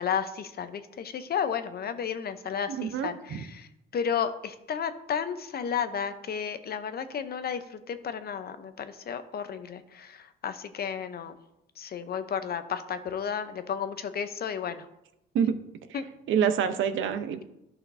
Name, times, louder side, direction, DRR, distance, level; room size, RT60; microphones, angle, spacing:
voice 1, 0.0-3.7 3.9-10.2 10.4-11.4 11.8-14.9 15.9-16.1, left 7 dB, 50° left, 11 dB, 0.7 m, -32 dB
voice 2, 2.7-3.4 15.3-15.5 15.9-16.0 16.3-17.4, right 8 dB, 80° right, 9 dB, 0.7 m, -27 dB
11.5 x 5.8 x 2.6 m, 0.87 s
cardioid pair, 90°, 20 cm